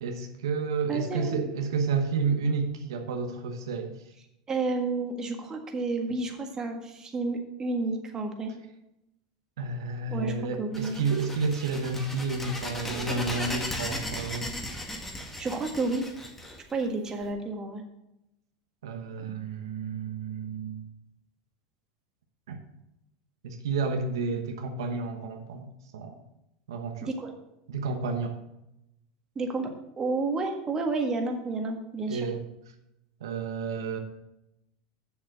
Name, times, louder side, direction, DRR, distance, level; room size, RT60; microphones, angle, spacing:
voice 1, 0.0-3.9 9.6-14.5 18.8-20.8 22.5-22.6 23.4-26.2 26.7-27.1 27.7-28.4 32.1-32.4 33.2-34.0, right 4 dB, 85° right, 5 dB, 1.1 m, -31 dB
voice 2, 0.9-1.5 4.5-8.5 10.1-11.0 15.2-16.0 16.7-17.8 27.0-27.3 29.3-29.7 30.0-32.3, right 3 dB, 25° right, 3 dB, 1.6 m, -31 dB
sound 1, 10.7-17.2, left 1 dB, 10° left, 2.0 m, -36 dB
7.2 x 7.0 x 6.2 m, 0.87 s
hypercardioid pair, 105°, 2 cm